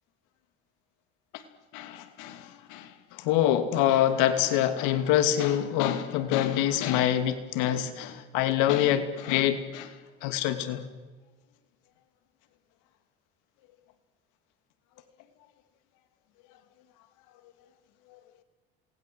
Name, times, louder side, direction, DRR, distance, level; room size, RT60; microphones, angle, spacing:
voice 1, 1.7-9.9 10.2-10.8 18.1-18.2, left 11 dB, 80° left, 2.7 m, -26 dB
27.5 x 20.5 x 7.7 m
supercardioid pair, 90°, 30 cm